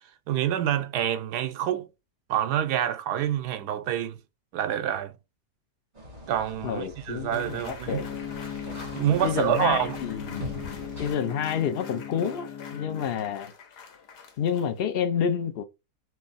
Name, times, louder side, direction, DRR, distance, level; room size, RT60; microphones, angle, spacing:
voice 1, 0.3-1.9 2.3-4.2 4.5-5.1 6.3-8.1 8.9-10.0, right 11 dB, 85° right, 1.2 m, -27 dB
sound 1, 5.9-11.1, equal, 30° right, 1.9 m, -42 dB
voice 2, 6.6-8.0 9.2-13.5 14.4-15.6, left 8 dB, 60° left, 0.6 m, -29 dB
sound 2, 7.3-14.9, left 6 dB, 80° left, 1.5 m, -47 dB
sound 3, 7.9-13.1, left 8 dB, 25° left, 0.6 m, -38 dB
3.3 x 3.1 x 4.0 m
omnidirectional pair, 1.7 m